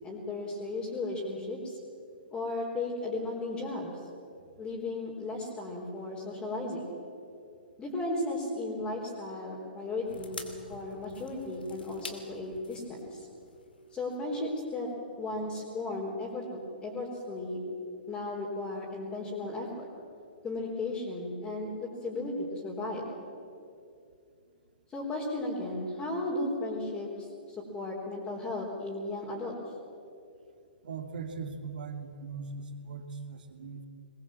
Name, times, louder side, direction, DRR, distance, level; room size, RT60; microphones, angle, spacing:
voice 1, 0.0-1.8 2.3-4.0 4.6-6.9 7.8-13.3 13.9-14.9 15.2-17.6 18.1-19.9 20.4-21.7 22.0-23.0 24.9-27.3 27.7-29.5, left 2 dB, 20° left, -5 dB, 4.0 m, -35 dB
sound 1, 10.1-14.6 14.9-15.0, left 4 dB, 70° left, 2.4 m, -48 dB
voice 2, 30.8-33.9, right 4 dB, 60° right, 6 dB, 2.4 m, -40 dB
21.5 x 21.0 x 7.5 m, 2.5 s
figure-of-eight pair, 115°, 5 cm